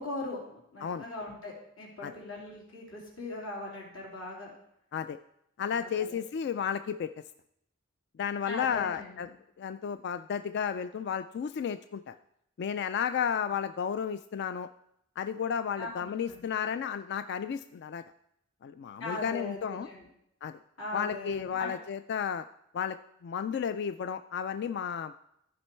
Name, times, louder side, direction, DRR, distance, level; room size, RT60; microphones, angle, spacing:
voice 1, 0.0-4.5 5.6-6.2 8.4-9.2 15.8-16.5 19.0-20.1 20.8-21.7, left 2 dB, 80° left, -2 dB, 3.0 m, -40 dB
voice 2, 5.6-7.1 8.2-9.3 9.6-12.2 12.6-14.7 15.2-18.0 18.6-19.9 20.4-20.6 20.9-22.5 22.7-25.1, left 7 dB, 55° left, 10 dB, 0.3 m, -33 dB
14.0 x 5.3 x 4.4 m, 0.76 s
head